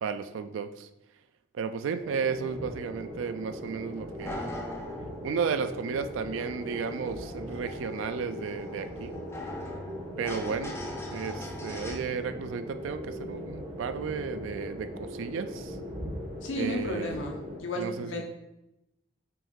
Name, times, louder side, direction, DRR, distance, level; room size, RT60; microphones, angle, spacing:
voice 1, 0.0-0.9 1.5-4.5 5.2-9.2 10.2-10.8 11.1-15.8 16.6-17.2 17.8-18.2, right 6 dB, 90° right, 11 dB, 0.3 m, -33 dB
sound 1, 2.0-17.6, equal, 30° right, 0.9 m, -40 dB
sound 2, 3.9-12.0, left 1 dB, 15° left, 0.4 m, -42 dB
voice 2, 16.4-18.2, left 1 dB, 85° left, 2 dB, 0.8 m, -33 dB
5.4 x 2.6 x 3.6 m, 0.89 s
head